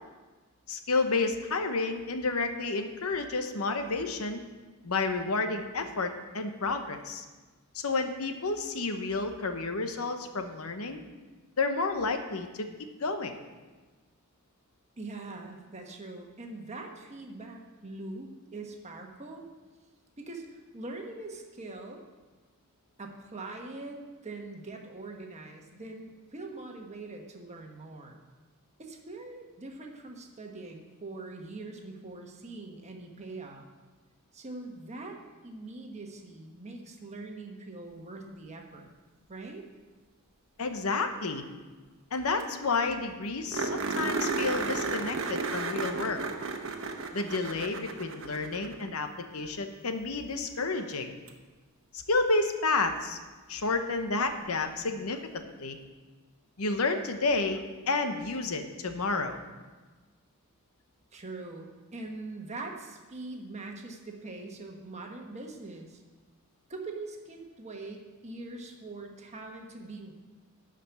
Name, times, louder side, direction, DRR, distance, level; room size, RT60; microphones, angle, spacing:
voice 1, 0.7-4.4 4.8-7.2 7.7-11.0 11.6-12.7 13.0-13.3 40.6-41.4 42.1-46.2 47.1-49.1 49.3-51.1 51.9-53.2 53.5-55.8 56.6-59.4, left 3 dB, 80° left, 7 dB, 0.9 m, -30 dB
voice 2, 15.0-19.5 20.2-22.0 23.0-28.2 28.8-33.6 34.3-38.9 39.3-39.7 61.1-66.0 66.7-70.1, right 2 dB, 30° right, 2 dB, 1.2 m, -42 dB
sound 1, 42.1-42.2 42.4-42.5 42.8-42.9 43.5-48.9 51.3-51.4 54.2-54.3, right 3 dB, 60° right, 1.0 m, -33 dB
12.0 x 5.1 x 7.0 m, 1.3 s
head